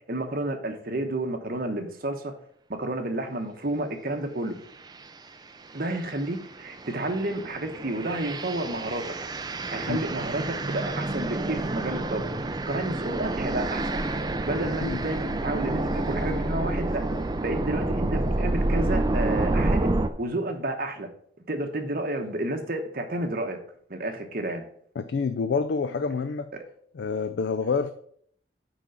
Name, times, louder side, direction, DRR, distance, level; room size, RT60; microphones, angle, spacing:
voice 1, 0.1-2.3 2.7-4.5 5.7-9.0 9.7-12.2 12.6-14.1 14.4-17.0 17.4-19.9 20.2-21.1 21.5-23.6 23.9-24.6, right 1 dB, 50° right, 5 dB, 1.1 m, -30 dB
sound 1, 4.8-5.1 5.6-20.1, right 2 dB, 20° right, 0.4 m, -29 dB
voice 2, 25.0-26.5 26.9-27.9, left 5 dB, 70° left, 10 dB, 0.4 m, -27 dB
6.0 x 5.1 x 5.7 m, 0.64 s
head